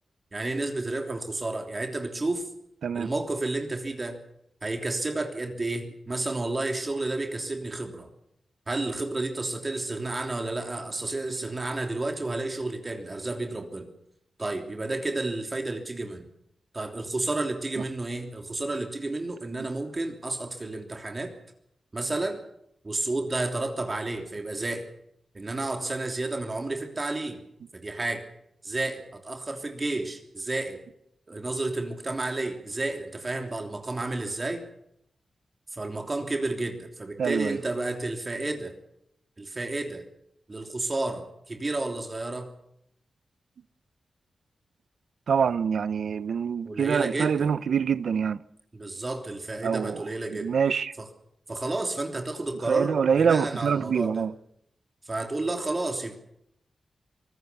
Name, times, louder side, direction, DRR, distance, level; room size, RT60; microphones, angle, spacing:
voice 1, 0.3-2.5 2.9-4.2 4.6-8.1 8.7-13.9 14.4-16.2 16.7-21.3 21.9-22.4 22.8-24.9 25.3-27.4 27.7-28.2 28.6-30.8 31.3-34.6 35.7-38.7 39.4-40.0 40.5-42.5 46.6-47.5 48.7-50.5 51.0-51.1 51.5-54.3 55.0-56.2, right 2 dB, 25° right, 3.2 m, -31 dB
voice 2, 37.2-37.6 45.3-48.4 49.6-50.0 50.4-50.9 52.7-54.3, right 6 dB, 80° right, 0.9 m, -25 dB
24.5 x 21.0 x 6.9 m
wide cardioid pair, 145°, 0 cm